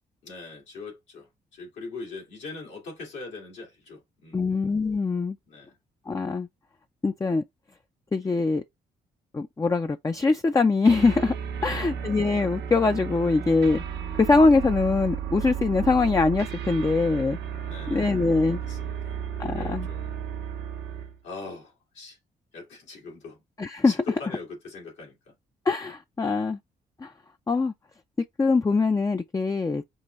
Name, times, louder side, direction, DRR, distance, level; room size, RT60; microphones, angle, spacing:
voice 1, 0.2-4.5 5.5-5.8 8.2-8.5 11.6-12.0 13.9-14.2 17.6-18.3 18.6-20.3 21.2-22.2 22.5-23.4 23.8-25.3, left 3 dB, 80° left, 2.1 m, -42 dB
voice 2, 4.3-5.4 6.1-6.5 7.0-7.4 8.1-8.6 9.3-11.3 11.6-13.8 14.2-17.4 17.9-18.6 19.4-19.9 23.6-23.9 25.7-26.6 27.0-27.1 27.5-27.7 28.4-29.8, left 3 dB, 20° left, 0.5 m, -23 dB
sound 1, 10.9-21.2, right 8 dB, 65° right, 0.8 m, -33 dB
5.4 x 2.2 x 3.1 m
supercardioid pair, 50°, 19 cm